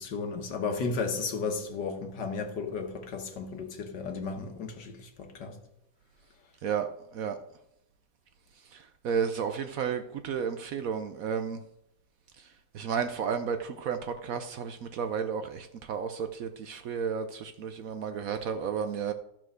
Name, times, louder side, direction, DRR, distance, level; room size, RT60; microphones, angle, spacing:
voice 1, 0.0-5.6, left 4 dB, 75° left, 1.8 m, -34 dB
voice 2, 9.0-11.6 12.7-19.1, right 7 dB, 65° right, 0.9 m, -32 dB
13.5 x 4.5 x 6.3 m
omnidirectional pair, 1.9 m